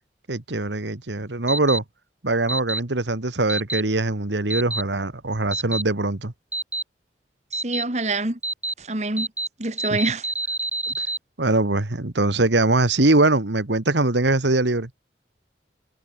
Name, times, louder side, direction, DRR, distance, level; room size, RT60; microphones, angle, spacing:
voice 1, 0.3-1.8 2.2-6.3 9.9-10.0 10.9-11.0 11.4-14.9, right 2 dB, 90° right, 1.8 m, -22 dB
sound 1, 1.5-1.8 2.5-2.8 3.5-3.8 4.5-4.8 5.5-5.8 6.5-6.8 7.5-7.8 8.4-8.7 9.2-9.5 9.8-11.2, right 2 dB, 10° right, 0.9 m, -27 dB
voice 2, 7.5-8.4 8.8-9.3 9.6-10.2, right 2 dB, 40° right, 2.0 m, -26 dB
head